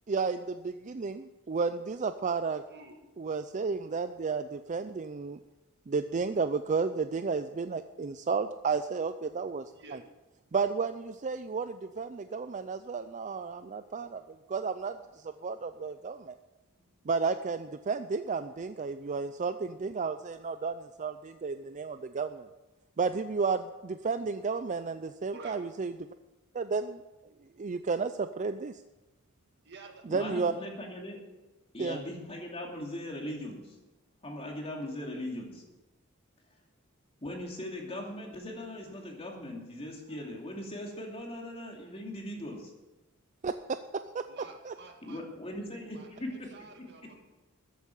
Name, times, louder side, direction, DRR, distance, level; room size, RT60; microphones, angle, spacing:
voice 1, 0.1-2.6 3.2-5.4 5.9-9.7 10.5-14.2 14.5-16.3 17.1-22.5 23.0-25.9 26.5-27.0 27.6-28.8 30.1-30.5 31.8-32.0 43.4-43.5 44.1-44.2 44.7-44.8, right 4 dB, 35° right, 10 dB, 0.4 m, -32 dB
voice 2, 2.7-3.0 9.7-10.0 25.3-25.6 29.6-30.1 40.1-40.3 44.3-45.2 45.9-47.2, right 3 dB, 55° right, 3 dB, 2.0 m, -50 dB
voice 3, 30.1-31.2 31.7-33.8 34.2-35.6 37.2-42.7 45.0-46.5 46.8-46.9, left 1 dB, 30° left, 0 dB, 2.6 m, -39 dB
14.0 x 8.3 x 7.1 m, 1.1 s
head